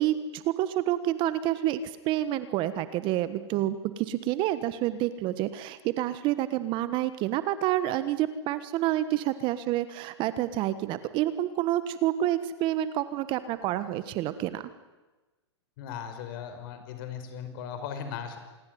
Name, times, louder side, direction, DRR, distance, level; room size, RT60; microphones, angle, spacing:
voice 1, 0.0-14.6, right 13 dB, 35° right, 13 dB, 1.3 m, -28 dB
voice 2, 15.8-18.4, left 8 dB, 50° left, 8 dB, 5.4 m, -38 dB
27.0 x 21.0 x 9.4 m, 1.2 s
hypercardioid pair, 130°, 15 cm